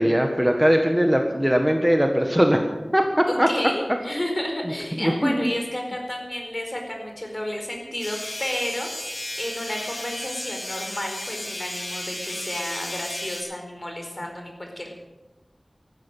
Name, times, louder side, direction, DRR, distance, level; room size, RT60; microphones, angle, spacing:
voice 1, 0.0-2.6 2.9-3.5 5.0-5.4, equal, 10° right, 4 dB, 1.6 m, -20 dB
voice 2, 3.3-8.9 9.3-14.9, left 1 dB, 35° left, 2 dB, 4.6 m, -31 dB
sound 1, 8.0-13.4, left 1 dB, 75° left, 6.8 m, -34 dB
14.5 x 12.5 x 7.7 m, 1.1 s
wide cardioid pair, 55°, 0 cm